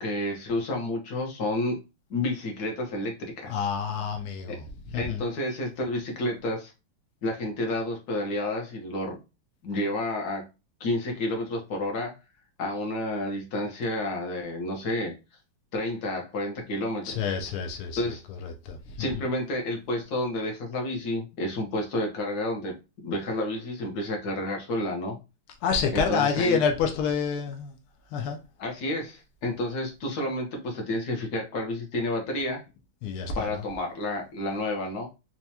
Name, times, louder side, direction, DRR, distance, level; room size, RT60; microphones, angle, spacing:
voice 1, 0.0-1.8 2.1-3.7 4.9-6.7 7.2-9.2 9.6-10.4 10.8-12.1 12.6-15.1 15.7-17.3 18.0-18.2 19.0-22.7 23.0-25.2 25.9-26.6 28.6-32.6 33.3-35.1, left 1 dB, 55° left, 1.3 m, -30 dB
voice 2, 3.5-4.6 4.9-5.2 17.0-19.2 25.6-27.7 28.1-28.4 33.0-33.6, left 6 dB, 85° left, 1.5 m, -28 dB
4.5 x 2.3 x 2.7 m
omnidirectional pair, 2.3 m